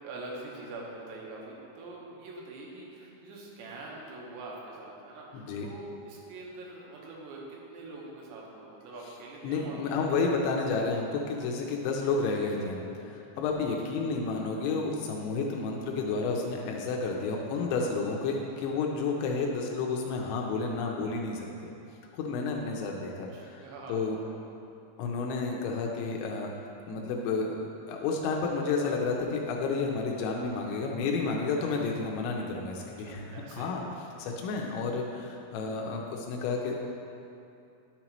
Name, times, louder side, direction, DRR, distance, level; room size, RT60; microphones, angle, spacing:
voice 1, 0.0-10.0 12.4-12.5 13.8-13.9 23.3-24.5 32.8-33.8, right 2 dB, 85° right, -3 dB, 3.4 m, -44 dB
voice 2, 5.3-5.7 9.4-21.5 22.1-23.6 23.9-24.2 25.0-27.6 27.9-33.8 34.2-36.9, left 4 dB, 90° left, 0 dB, 3.0 m, -31 dB
10.5 x 7.1 x 3.0 m, 2.7 s
omnidirectional pair, 5.1 m